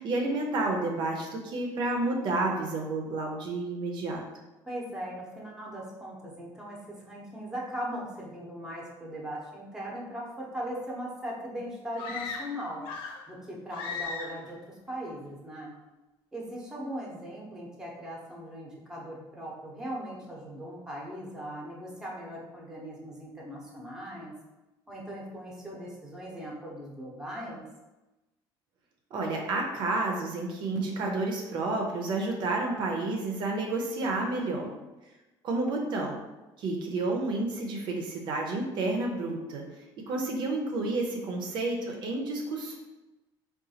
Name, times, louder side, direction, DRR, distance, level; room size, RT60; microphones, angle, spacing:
voice 1, 0.0-4.2 29.1-34.7 35.4-36.2 36.6-39.6 40.1-42.8, right 2 dB, 60° right, 1 dB, 0.5 m, -30 dB
voice 2, 4.7-12.9 13.3-15.7 16.3-24.3 24.9-27.6, equal, 5° right, -4 dB, 0.7 m, -39 dB
sound 1, 12.0-13.3 13.7-14.5, left 4 dB, 85° left, 0.5 m, -37 dB
3.7 x 2.3 x 2.8 m, 1.1 s
cardioid pair, 135°, 9 cm